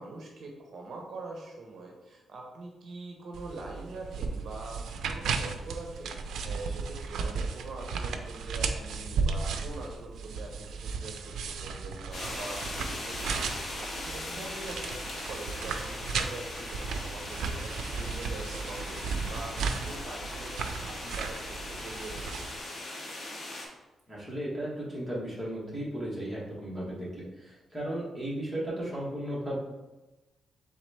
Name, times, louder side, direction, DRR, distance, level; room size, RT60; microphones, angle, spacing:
voice 1, 0.0-22.3, right 2 dB, 55° right, 0 dB, 0.7 m, -43 dB
sound 1, 3.3-22.6, right 5 dB, 90° right, 0.3 m, -35 dB
sound 2, 12.1-23.7, left 1 dB, 45° left, 1.0 m, -39 dB
voice 2, 24.1-29.6, right 1 dB, 5° right, -7 dB, 1.1 m, -35 dB
4.0 x 3.5 x 3.2 m, 1.1 s
wide cardioid pair, 165°, 0 cm